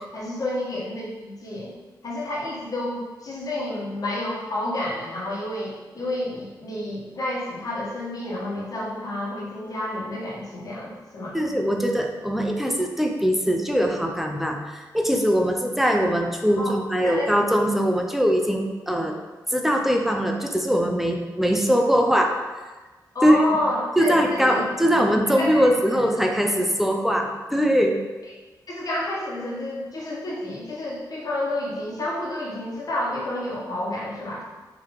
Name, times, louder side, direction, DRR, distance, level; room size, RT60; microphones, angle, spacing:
voice 1, 0.0-1.7 2.0-11.3 16.6-16.7 17.0-17.3 23.1-24.6 25.4-25.7 28.7-34.4, left 1 dB, 55° left, -6 dB, 1.3 m, -30 dB
voice 2, 11.3-19.2 19.5-22.4 23.2-23.4 24.0-28.0, equal, 5° right, 2 dB, 0.6 m, -21 dB
3.8 x 2.8 x 4.8 m, 1.3 s
cardioid pair, 70°, 8 cm